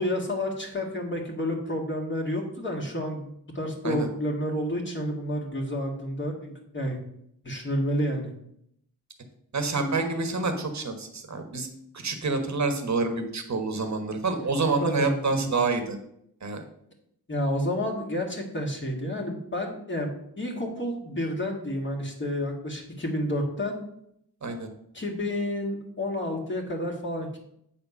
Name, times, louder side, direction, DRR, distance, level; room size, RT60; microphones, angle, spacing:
voice 1, 0.0-7.0 7.4-8.3 14.8-15.5 17.3-23.8 24.9-27.4, left 1 dB, 30° left, 0 dB, 2.1 m, -30 dB
voice 2, 9.5-11.7 12.0-16.0 16.4-16.6 24.4-24.7, right 3 dB, 45° right, 6 dB, 1.4 m, -27 dB
8.2 x 4.2 x 6.0 m, 0.74 s
cardioid pair, 85°, 38 cm